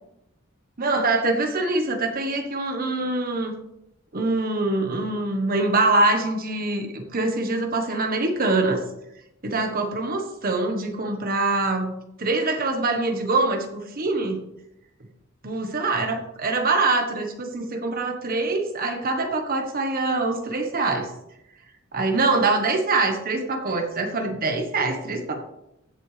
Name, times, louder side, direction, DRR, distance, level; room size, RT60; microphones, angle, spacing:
voice 1, 0.8-3.5 4.1-8.8 9.4-11.9 12.2-14.4 15.4-21.1 21.9-25.4, right 2 dB, 45° right, 4 dB, 1.2 m, -24 dB
16.0 x 7.6 x 3.3 m, 0.84 s
head